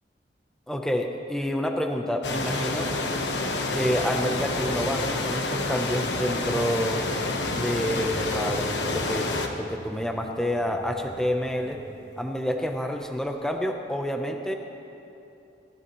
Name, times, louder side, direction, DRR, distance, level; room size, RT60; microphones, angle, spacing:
voice 1, 0.7-2.9 3.7-7.0 7.5-11.8 12.2-14.6, equal, 5° left, 3 dB, 0.7 m, -28 dB
sound 1, 2.2-9.5, left 2 dB, 75° left, 1.2 m, -28 dB
sound 2, 8.0-13.5, equal, 75° right, 2.3 m, -46 dB
26.0 x 12.5 x 3.1 m, 2.8 s
head